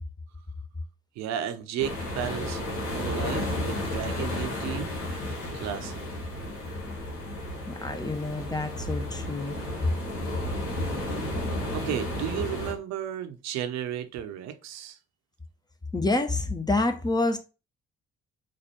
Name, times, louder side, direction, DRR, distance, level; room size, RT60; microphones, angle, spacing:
voice 1, 1.2-6.1 11.7-15.0, right 10 dB, 65° right, 0.7 m, -34 dB
sound 1, 1.8-12.7, left 1 dB, 70° left, 1.5 m, -33 dB
voice 2, 7.7-9.6 15.9-17.4, left 2 dB, 15° left, 0.8 m, -27 dB
4.2 x 2.6 x 4.2 m
hypercardioid pair, 45°, 29 cm